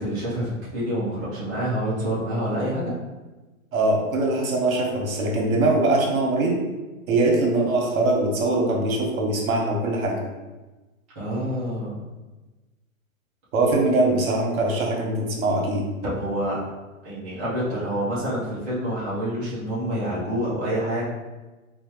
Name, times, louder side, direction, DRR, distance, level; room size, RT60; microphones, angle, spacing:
voice 1, 0.0-2.9 11.2-12.0 16.0-16.6 17.0-21.0, equal, 15° right, -9 dB, 0.3 m, -27 dB
voice 2, 3.7-6.6 7.1-10.2 13.5-15.8, right 2 dB, 75° right, 0 dB, 1.1 m, -22 dB
4.2 x 2.2 x 2.9 m, 1.2 s
hypercardioid pair, 140°, 42 cm